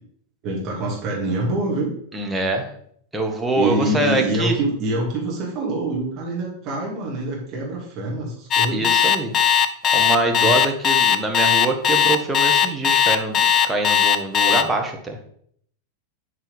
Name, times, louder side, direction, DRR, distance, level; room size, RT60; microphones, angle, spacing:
voice 1, 0.4-1.9 3.6-8.9 10.3-10.5, right 2 dB, 35° right, -3 dB, 2.4 m, -25 dB
voice 2, 2.1-2.7 3.1-4.6 8.7-9.3 9.9-15.2, right 2 dB, 10° right, 2 dB, 1.5 m, -24 dB
Alarm, 8.5-14.6, left 8 dB, 30° left, 0.6 m, -17 dB
7.7 x 4.5 x 5.4 m, 0.64 s
figure-of-eight pair, 90°, 0 cm